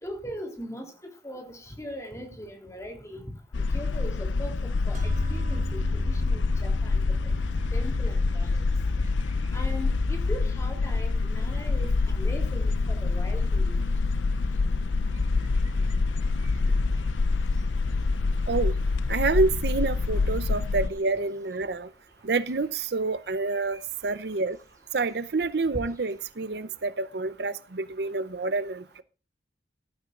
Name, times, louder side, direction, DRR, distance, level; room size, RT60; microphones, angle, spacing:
voice 1, 0.0-3.3 3.6-4.5 4.9-7.3 7.7-8.6 9.5-13.8 16.6-16.7, equal, 15° left, 4 dB, 3.1 m, -40 dB
sound 1, 3.5-20.9, left 3 dB, 85° left, 0.5 m, -26 dB
sound 2, 4.9-15.4, right 1 dB, 45° right, 3.1 m, -41 dB
sound 3, 7.3-26.3, equal, 15° right, 4.4 m, -53 dB
voice 2, 19.1-21.9 22.2-24.6 24.9-29.0, right 3 dB, 60° right, 15 dB, 0.6 m, -28 dB
15.5 x 12.5 x 2.4 m, 0.34 s
head